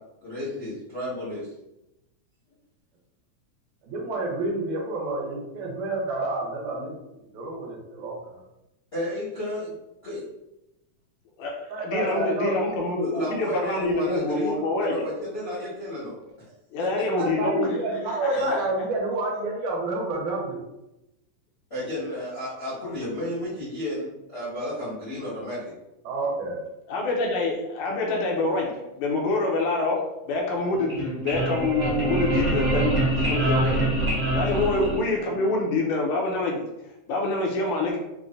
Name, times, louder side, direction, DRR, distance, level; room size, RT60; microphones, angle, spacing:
voice 1, 0.2-1.5 8.9-9.7 10.0-10.2 13.0-16.1 16.8-17.2 18.3-18.6 21.7-25.7 34.6-34.8, left 1 dB, 50° left, -10 dB, 0.7 m, -32 dB
voice 2, 3.8-6.9 7.3-8.4 11.7-12.5 17.2-20.6 26.0-26.6, right 2 dB, 75° right, -2 dB, 2.2 m, -29 dB
voice 3, 11.4-15.1 16.7-17.8 18.2-18.7 22.1-22.2 26.9-33.8 34.3-36.7 37.1-38.0, left 2 dB, 85° left, 0 dB, 2.1 m, -26 dB
sound 1, 30.7-35.4, right 1 dB, 40° right, 0.9 m, -25 dB
5.7 x 2.2 x 2.5 m, 0.91 s
omnidirectional pair, 3.5 m